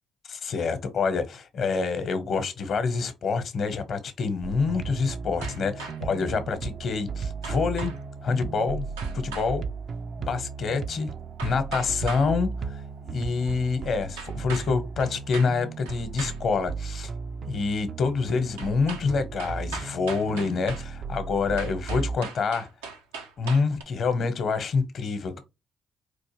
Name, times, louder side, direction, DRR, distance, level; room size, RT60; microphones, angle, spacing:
voice 1, 0.3-7.9 8.2-8.8 9.1-9.6 10.2-11.1 11.4-17.1 17.4-22.7 23.4-25.4, left 4 dB, 60° left, 0.9 m, -27 dB
sound 1, 4.4-22.2, right 5 dB, 55° right, 0.4 m, -35 dB
sound 2, 5.4-6.2 7.4-8.0 9.0-9.5 11.4-12.3 14.2-14.7 15.0-15.5 15.8-16.4 18.6-19.1 19.4-20.9 21.6-23.8, right 5 dB, 90° right, 0.7 m, -39 dB
4.4 x 2.5 x 3.0 m
hypercardioid pair, 50°, 0 cm